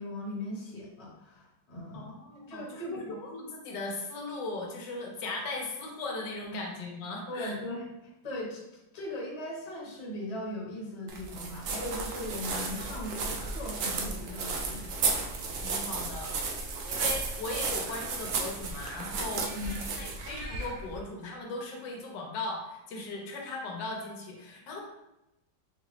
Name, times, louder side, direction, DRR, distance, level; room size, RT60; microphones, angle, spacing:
voice 1, 0.0-2.1 2.5-3.1 7.3-7.8 8.2-8.6 8.9-15.5 19.5-19.8, left 1 dB, 25° left, -6 dB, 0.9 m, -39 dB
voice 2, 1.9-7.6 15.6-16.4 16.9-24.8, left 2 dB, 85° left, 0 dB, 1.4 m, -38 dB
sound 1, 11.1-21.0, right 4 dB, 75° right, 0.7 m, -34 dB
4.3 x 2.4 x 3.1 m, 0.93 s
omnidirectional pair, 1.9 m